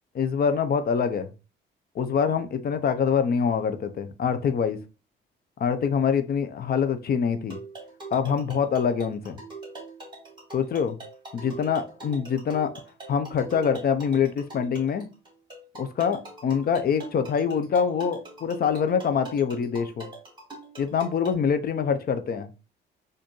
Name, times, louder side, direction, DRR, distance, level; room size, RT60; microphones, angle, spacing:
voice 1, 0.1-1.3 2.0-4.8 5.6-7.6 8.1-9.4 10.5-11.0 11.3-12.7 13.1-15.1 15.8-20.1 20.8-22.5, left 7 dB, 50° left, 0.6 m, -25 dB
sound 1, 7.5-21.3, right 3 dB, 25° right, 1.8 m, -43 dB
4.2 x 2.6 x 3.0 m
cardioid pair, 90°, 20 cm